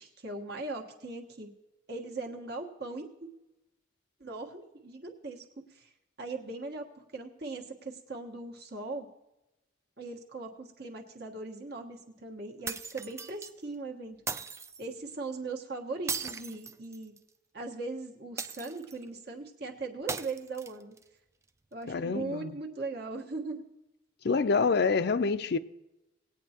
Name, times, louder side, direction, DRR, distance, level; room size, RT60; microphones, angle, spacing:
voice 1, 0.0-1.5 1.9-3.3 4.2-5.4 5.7-5.9 6.2-9.1 10.0-14.2 14.8-17.1 17.5-20.9 21.7-23.6, right 3 dB, 55° right, 1.4 m, -39 dB
sound 1, 12.7-13.5 14.3-14.8 16.1-17.3 18.4-19.0 20.1-21.0, right 5 dB, 15° right, 0.3 m, -38 dB
voice 2, 21.9-22.5 24.2-25.6, left 4 dB, 55° left, 0.5 m, -27 dB
19.0 x 8.9 x 2.9 m
head